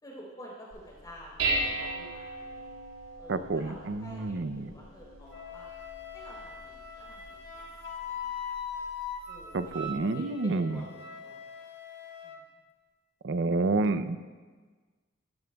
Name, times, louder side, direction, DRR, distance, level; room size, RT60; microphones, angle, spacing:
voice 1, 0.0-2.7 3.2-5.7 6.1-8.4 9.3-11.5 12.2-12.4, equal, 20° left, -4 dB, 3.6 m, -50 dB
Dishes pots and pans, 0.7-9.9, right 2 dB, 85° right, 3.5 m, -38 dB
voice 2, 3.3-4.7 9.5-10.8 13.2-14.2, right 3 dB, 65° right, 12 dB, 0.6 m, -29 dB
Wind instrument woodwind instrument, 5.3-12.4, left 5 dB, 65° left, 1.2 m, -41 dB
14.5 x 14.0 x 2.3 m, 1.4 s
head